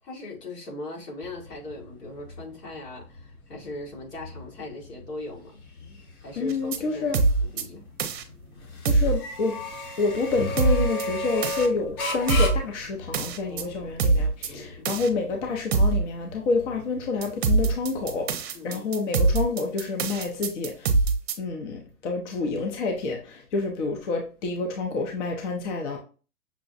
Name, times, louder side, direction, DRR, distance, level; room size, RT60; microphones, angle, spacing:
voice 1, 0.0-5.6 6.2-7.8 13.4-14.0 14.5-14.9 18.5-18.9, left 2 dB, 90° left, 2.1 m, -40 dB
sound 1, 1.2-18.4, left 2 dB, 65° left, 1.4 m, -37 dB
voice 2, 6.4-7.2 8.9-9.6 10.0-20.9 21.4-26.0, left 4 dB, 50° left, 0.8 m, -28 dB
sound 2, 6.5-6.8 7.1-7.6 8.0-8.2 8.9-9.2 10.6-11.0 11.4-11.7 12.3-12.6 13.1-13.6 14.0-14.5 14.9-15.1 15.7-16.0 17.2-21.3, right 3 dB, 45° right, 0.6 m, -23 dB
6.0 x 2.1 x 2.6 m
hypercardioid pair, 155°, 46 cm